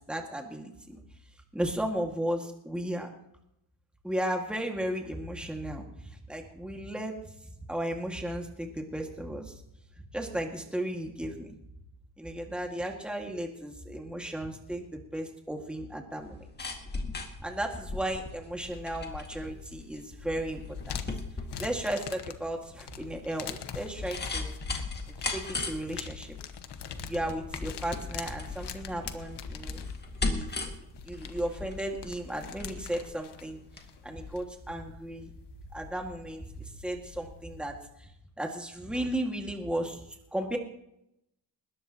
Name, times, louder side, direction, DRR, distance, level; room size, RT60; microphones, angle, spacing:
voice 1, 0.1-1.0 1.5-3.1 4.0-7.1 7.7-9.5 10.1-11.6 12.2-16.5 17.4-20.6 20.9-21.0 21.6-24.5 25.3-26.4 27.1-29.8 30.2-30.5 31.0-33.6 34.0-35.3 35.7-38.1 38.4-40.0 40.3-40.6, right 1 dB, ahead, 2 dB, 1.9 m, -35 dB
sound 1, 16.2-33.9 34.2-34.3, left 3 dB, 25° left, 2.0 m, -38 dB
sound 2, 18.6-37.7, left 9 dB, 65° left, 1.3 m, -45 dB
20.5 x 17.5 x 3.0 m, 0.79 s
cardioid pair, 145°, 44 cm